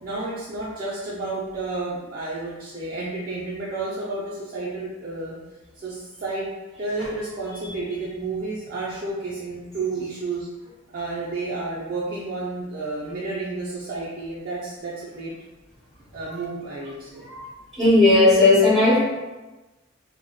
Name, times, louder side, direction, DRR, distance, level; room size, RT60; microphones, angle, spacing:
voice 1, 0.0-5.3 5.7-6.5 6.8-10.5 10.9-15.3 16.1-17.3, right 3 dB, 40° right, -7 dB, 0.4 m, -31 dB
voice 2, 17.8-19.0, left 2 dB, ahead, -11 dB, 1.1 m, -16 dB
3.7 x 2.1 x 2.2 m, 1.1 s
head